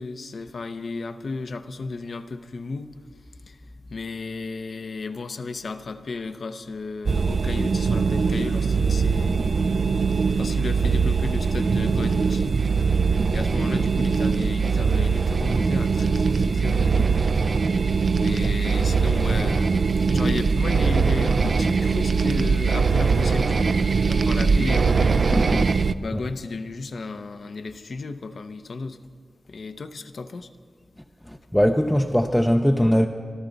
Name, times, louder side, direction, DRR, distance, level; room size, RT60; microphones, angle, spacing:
voice 1, 0.0-2.9 3.5-3.6 3.9-9.5 10.0-10.1 10.4-12.6 13.3-17.1 18.2-25.3 26.0-29.0 29.5-30.5, left 3 dB, 60° left, 9 dB, 0.7 m, -33 dB
sound 1, 7.1-25.9, right 5 dB, 55° right, 0.4 m, -21 dB
voice 2, 25.3-25.8 26.1-26.2 31.3-33.1, equal, 5° left, 3 dB, 0.5 m, -21 dB
25.0 x 13.0 x 4.0 m, 2.1 s
wide cardioid pair, 150°, 0 cm